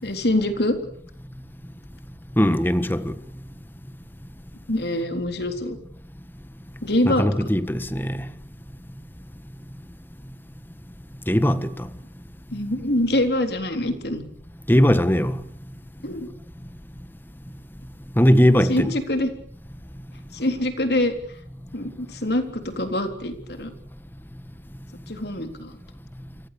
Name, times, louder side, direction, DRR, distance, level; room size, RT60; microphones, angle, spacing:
voice 1, 0.0-0.8 4.7-5.8 6.8-7.3 12.5-14.2 16.0-16.3 18.6-19.3 20.3-21.1 21.7-23.7 25.1-25.8, left 1 dB, 70° left, 3.7 m, -24 dB
voice 2, 2.4-3.1 7.0-8.1 11.3-11.9 14.7-15.4 18.2-18.9, equal, 10° left, 1.5 m, -19 dB
30.0 x 24.5 x 6.9 m
head